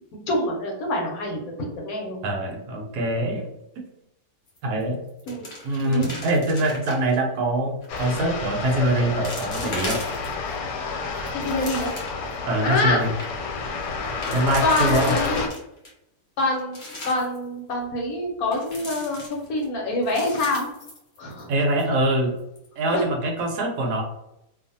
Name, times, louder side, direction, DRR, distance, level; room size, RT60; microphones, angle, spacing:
voice 1, 0.3-1.4 1.8-2.2 5.3-5.4 5.8-6.1 11.4-11.9 12.6-13.0 14.6-15.5 16.4-16.8 17.1-20.7 21.2-21.5 22.9-23.0, left 2 dB, 70° left, 0 dB, 1.0 m, -25 dB
voice 2, 2.2-3.5 4.6-5.0 5.6-10.0 12.4-13.1 14.3-15.2 21.5-22.4 22.8-24.0, right 1 dB, 75° right, 2 dB, 1.1 m, -24 dB
sound 1, 4.5-4.8 5.1-7.2 7.8-8.2 8.7-8.8 9.2-10.6 11.0-12.3 12.7-12.8 13.0-13.3 14.0-15.9 16.4-17.4 18.5-19.7 20.0-21.5 21.8-21.9 22.4-22.7, left 1 dB, 50° left, 0.6 m, -38 dB
sound 2, 7.9-15.5, left 4 dB, 90° left, 1.2 m, -29 dB
2.6 x 2.4 x 2.6 m, 0.84 s
omnidirectional pair, 1.8 m